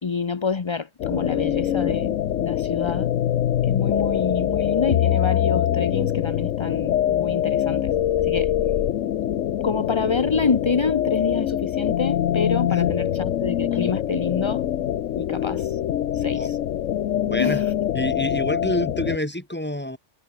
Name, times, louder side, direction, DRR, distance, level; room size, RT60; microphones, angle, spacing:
voice 1, 0.0-3.1 3.6-7.9 8.2-8.5 9.6-14.6 15.2-15.8 16.1-16.6 17.4-17.7, left 5 dB, 30° left, 0.6 m, -27 dB
sound 1, 1.0-19.2, left 11 dB, 75° left, 1.1 m, -24 dB
voice 2, 17.2-17.6 17.9-20.0, left 1 dB, 10° left, 2.5 m, -27 dB
omnidirectional pair, 1.3 m